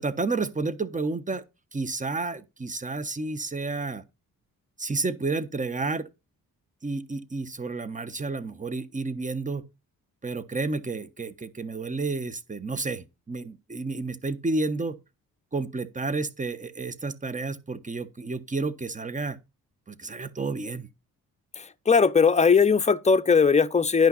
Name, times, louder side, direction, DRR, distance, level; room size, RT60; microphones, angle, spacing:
voice 1, 0.0-1.4 1.7-4.0 4.8-6.1 6.8-9.6 10.2-15.0 15.5-19.4 19.9-20.9, right 3 dB, 20° right, 1.1 m, -31 dB
voice 2, 21.9-24.1, left 5 dB, 20° left, 0.8 m, -19 dB
10.5 x 5.7 x 4.0 m
cardioid pair, 60°, 35 cm